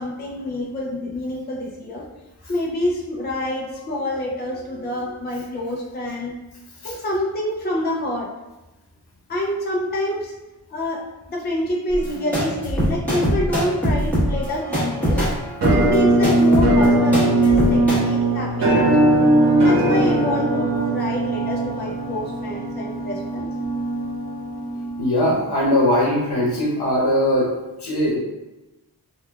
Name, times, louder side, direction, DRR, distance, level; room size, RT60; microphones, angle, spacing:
voice 1, 0.0-2.0 2.5-6.4 6.8-8.3 9.3-10.3 10.7-11.0 11.3-15.3 15.7-19.3 19.6-23.5, left 1 dB, 25° left, -2 dB, 0.4 m, -27 dB
voice 2, 4.7-5.0 6.8-6.9 25.0-27.5 27.8-28.2, left 1 dB, 75° left, -4 dB, 0.9 m, -21 dB
sound 1, 11.9-18.0, equal, 5° left, 1.2 m, -22 dB
Musical instrument, 15.6-25.4, right 1 dB, 85° right, 0.8 m, -19 dB
3.3 x 2.3 x 2.3 m, 1.0 s
wide cardioid pair, 135°, 40 cm